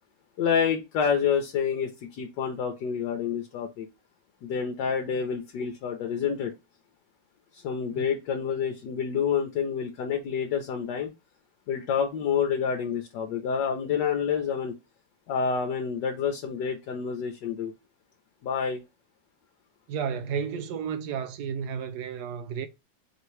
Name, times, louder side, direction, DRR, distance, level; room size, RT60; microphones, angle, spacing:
voice 1, 0.4-3.9 4.4-6.5 7.5-11.1 11.7-14.7 15.3-17.7 18.4-18.8, left 7 dB, 70° left, 1.2 m, -28 dB
voice 2, 19.9-22.7, right 7 dB, 75° right, 0.9 m, -32 dB
4.6 x 2.8 x 3.2 m
omnidirectional pair, 2.2 m